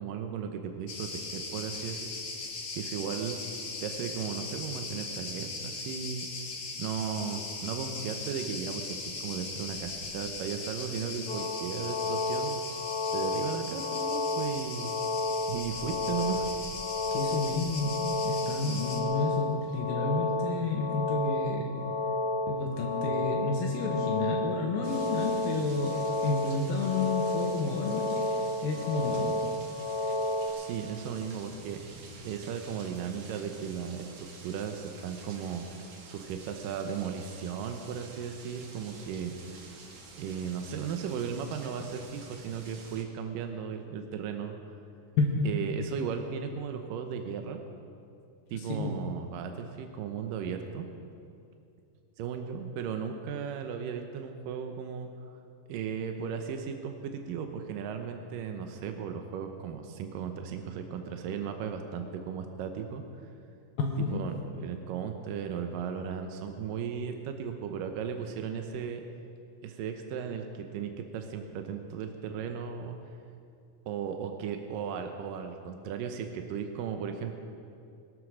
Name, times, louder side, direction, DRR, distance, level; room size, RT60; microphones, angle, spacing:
voice 1, 0.0-2.1 2.7-3.4 3.8-6.3 6.8-12.6 13.1-15.0 15.5-16.7 30.6-31.8 32.2-39.3 40.2-44.6 45.4-47.6 48.5-50.9 52.2-55.1 55.7-63.0 64.1-69.0 69.6-73.0 73.9-77.4, right 7 dB, 75° right, 5 dB, 2.5 m, -36 dB
Cricket, 0.9-19.0, left 3 dB, 70° left, 3.9 m, -39 dB
sound 1, 11.3-30.5, left 2 dB, 35° left, 3.2 m, -32 dB
voice 2, 17.1-21.8 22.5-28.2 28.6-29.5 45.2-45.6 48.7-48.9 63.8-64.2, left 3 dB, 85° left, 0 dB, 3.1 m, -31 dB
sound 2, 24.8-43.0, right 3 dB, 60° right, 3.0 m, -49 dB
22.0 x 9.5 x 6.3 m, 2.5 s
omnidirectional pair, 4.0 m